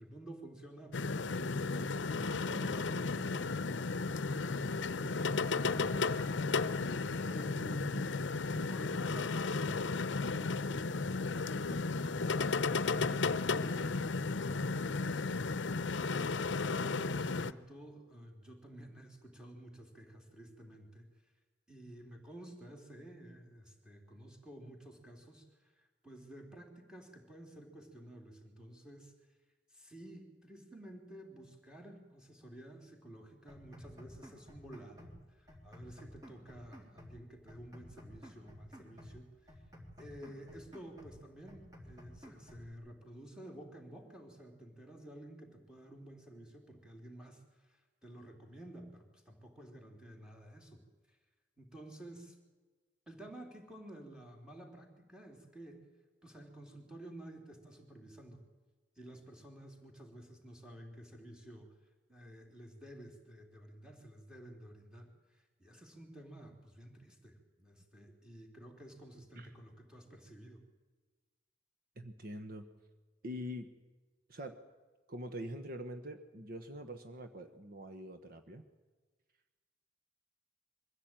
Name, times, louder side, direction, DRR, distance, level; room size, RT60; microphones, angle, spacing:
voice 1, 0.0-4.0 4.4-6.2 7.1-8.2 8.6-16.0 16.5-21.1 21.7-29.1 29.7-39.5 40.0-51.2 51.6-52.4 53.1-55.8 56.2-58.4 58.9-61.7 62.1-70.6, right 1 dB, 5° right, 0 dB, 3.2 m, -52 dB
sound 1, 0.9-17.5, left 4 dB, 70° left, 0.7 m, -34 dB
sound 2, 33.5-35.2 35.5-37.2 37.5-39.2 39.5-41.2 41.5-42.7, equal, 20° right, 3.6 m, -54 dB
voice 2, 72.0-72.6 73.2-73.7 74.3-74.6 75.1-78.6, equal, 50° right, 8 dB, 1.2 m, -44 dB
23.0 x 15.0 x 9.0 m, 1.3 s
head